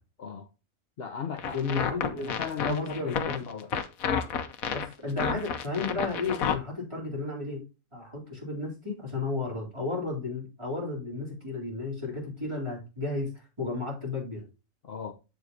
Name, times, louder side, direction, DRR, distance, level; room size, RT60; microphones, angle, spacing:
voice 1, 1.0-1.6 2.2-3.7 14.8-15.1, left 7 dB, 50° left, 0.9 m, -36 dB
sound 1, 1.4-6.6, left 7 dB, 90° left, 1.3 m, -30 dB
voice 2, 1.5-2.3 2.6-3.5 4.7-7.6 7.9-13.3 13.6-14.5, left 3 dB, 20° right, 4.0 m, -33 dB
8.0 x 7.3 x 2.7 m
omnidirectional pair, 1.4 m